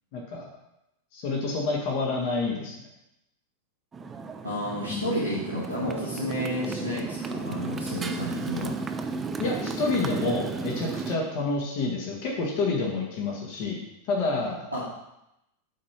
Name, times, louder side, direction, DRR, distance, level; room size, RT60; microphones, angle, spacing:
voice 1, 0.1-0.5 1.1-2.7 4.9-5.1 9.4-13.8 14.1-14.7, left 3 dB, 45° left, -1 dB, 1.7 m, -28 dB
Motorcycle, 3.9-11.2, right 4 dB, 15° right, 0.7 m, -33 dB
voice 2, 4.4-8.7 14.7-14.8, equal, 90° right, -9 dB, 2.0 m, -31 dB
8.5 x 4.3 x 5.8 m, 0.87 s
figure-of-eight pair, 90°, 0 cm